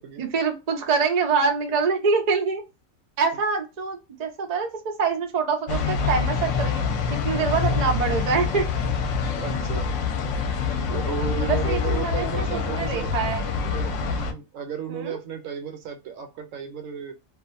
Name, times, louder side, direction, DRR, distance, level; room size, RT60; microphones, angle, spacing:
voice 1, 0.2-2.6 3.2-6.8 7.1-8.6 11.4-13.5 14.9-15.2, right 5 dB, 60° right, 0.4 m, -25 dB
sound 1, 5.7-14.3, left 5 dB, 65° left, 0.9 m, -26 dB
voice 2, 9.4-9.9 10.9-13.1 13.6-13.9 14.3-17.2, right 7 dB, 75° right, 0.9 m, -34 dB
2.4 x 2.4 x 2.5 m
omnidirectional pair, 1.5 m